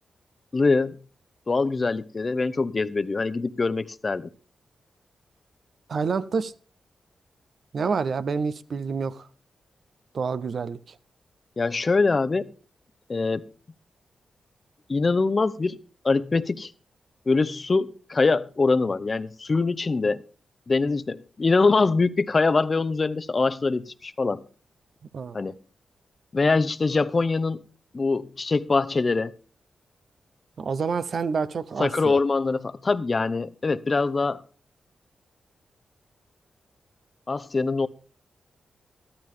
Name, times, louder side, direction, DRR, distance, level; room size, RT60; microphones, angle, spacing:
voice 1, 0.5-1.0 1.5-4.3 11.6-12.5 13.1-13.5 14.9-15.8 16.0-16.7 17.3-20.2 20.7-24.4 25.3-25.5 26.3-27.6 27.9-29.3 31.8-34.4 37.3-37.9, left 3 dB, 40° left, 0.7 m, -23 dB
voice 2, 5.9-6.5 7.7-9.3 10.1-11.0 25.1-25.4 30.6-32.2, right 5 dB, 65° right, 0.7 m, -28 dB
13.5 x 12.5 x 3.7 m
cardioid pair, 60°, 0 cm